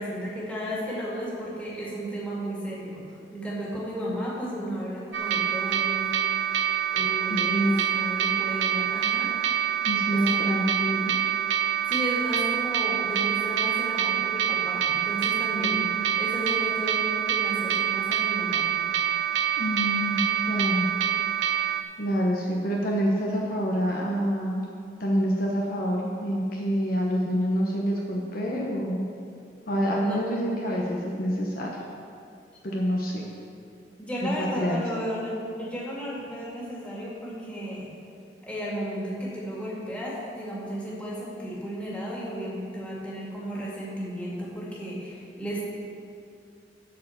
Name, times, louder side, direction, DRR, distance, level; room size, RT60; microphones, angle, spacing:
voice 1, 0.0-3.0 3.3-6.1 6.9-9.6 10.1-10.2 11.9-15.9 16.2-18.7 30.0-30.2 34.0-38.0 38.4-45.7, equal, 5° left, -6 dB, 2.3 m, -34 dB
sound 1, 5.1-21.8, right 9 dB, 70° right, 0.5 m, -26 dB
voice 2, 7.3-7.8 9.8-11.1 15.5-16.0 19.6-20.9 22.0-24.7 25.0-29.0 29.7-31.8 32.6-33.3 34.2-34.8, equal, 55° left, -2 dB, 1.1 m, -27 dB
12.0 x 4.7 x 7.3 m, 2.5 s
head